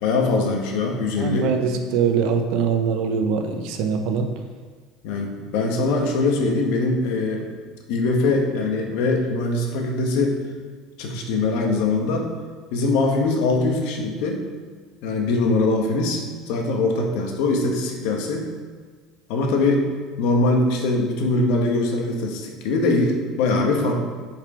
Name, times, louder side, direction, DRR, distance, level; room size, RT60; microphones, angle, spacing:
voice 1, 0.0-1.5 5.0-7.5 7.9-10.4 11.0-12.3 12.7-14.4 15.0-18.5 19.3-19.9 20.2-23.9, left 3 dB, 65° left, 2 dB, 1.3 m, -22 dB
voice 2, 1.2-4.3, right 6 dB, 60° right, 6 dB, 0.8 m, -22 dB
7.2 x 4.9 x 4.9 m, 1.5 s
cardioid pair, 170°, 0 cm